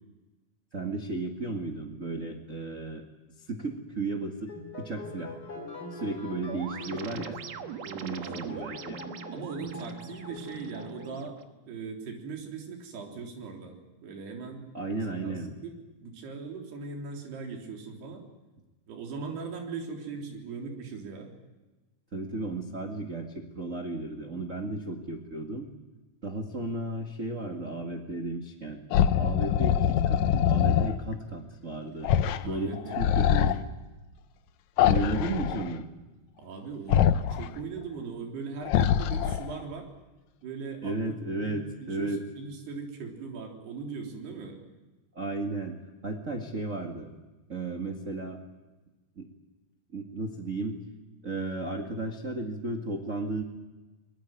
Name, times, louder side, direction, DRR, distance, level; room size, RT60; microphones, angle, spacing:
voice 1, 0.7-3.0 3.4-4.5 4.8-5.3 5.9-7.4 8.0-9.0 14.7-15.5 22.1-25.7 26.2-28.8 29.2-32.1 32.4-33.6 34.8-35.8 40.8-42.2 45.1-45.7 46.0-47.1 47.5-48.4 49.1-49.3 49.9-50.8 51.2-53.4, right 2 dB, 35° right, 4 dB, 1.2 m, -34 dB
sound 1, 4.5-11.2, left 1 dB, 25° left, 3.8 m, -43 dB
sound 2, 6.5-11.4, right 8 dB, 60° right, 2.0 m, -43 dB
voice 2, 7.8-8.7 9.3-11.4 11.7-14.6 15.1-15.7 16.0-18.2 18.9-21.3 32.4-33.4 36.4-37.1 37.3-39.9 40.4-44.6, right 5 dB, 85° right, 2 dB, 5.7 m, -40 dB
sound 3, 28.9-31.0 32.0-32.4 32.7-33.6 34.8-35.7 36.9-37.5 38.6-39.6, left 9 dB, 80° left, 1.6 m, -24 dB
23.5 x 22.5 x 9.3 m, 1.2 s
omnidirectional pair, 4.6 m